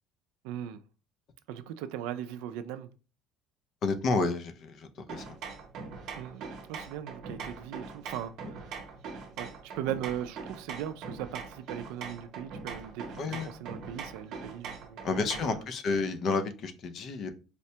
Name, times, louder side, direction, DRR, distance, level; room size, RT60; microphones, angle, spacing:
voice 1, 0.4-0.8 1.5-2.9 6.2-8.7 9.4-15.7, right 10 dB, 80° right, 0.3 m, -39 dB
voice 2, 3.8-5.2 13.2-13.5 15.0-17.3, left 4 dB, 35° left, 0.4 m, -30 dB
sound 1, 5.1-15.6, right 5 dB, 45° right, 0.7 m, -42 dB
4.1 x 2.1 x 2.8 m
cardioid pair, 175°, 0 cm